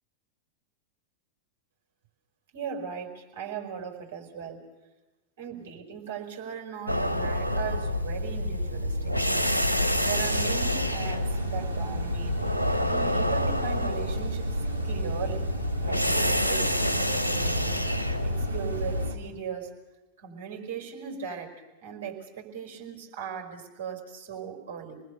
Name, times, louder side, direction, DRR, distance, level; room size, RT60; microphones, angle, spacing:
voice 1, 2.5-4.6 5.4-9.1 10.0-12.4 12.9-14.5 14.8-15.5 15.8-17.8 18.2-19.7 20.2-21.5 21.8-25.0, right 7 dB, 55° right, 2 dB, 4.9 m, -38 dB
sound 1, 6.9-19.1, left 1 dB, 85° left, 1.3 m, -27 dB
sound 2, 10.0-19.2, right 4 dB, 80° right, 2.1 m, -39 dB
28.0 x 20.0 x 6.8 m, 1.0 s
figure-of-eight pair, 90°, 0 cm